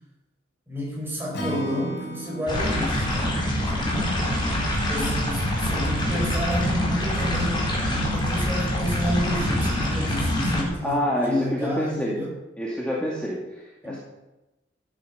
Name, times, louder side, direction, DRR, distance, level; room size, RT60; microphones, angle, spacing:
voice 1, 0.7-3.4 3.7-3.9 4.7-7.8 8.0-12.3 13.8-14.0, left 1 dB, 10° right, -2 dB, 5.5 m, -30 dB
Acoustic guitar / Strum, 1.3-4.6, right 1 dB, 60° left, 4.1 m, -36 dB
sound 1, 2.5-10.6, left 1 dB, 25° left, 4.2 m, -25 dB
voice 2, 10.8-11.3 11.6-12.2 12.6-14.0, equal, 5° left, -5 dB, 2.3 m, -27 dB
14.0 x 10.0 x 7.0 m, 1.0 s
head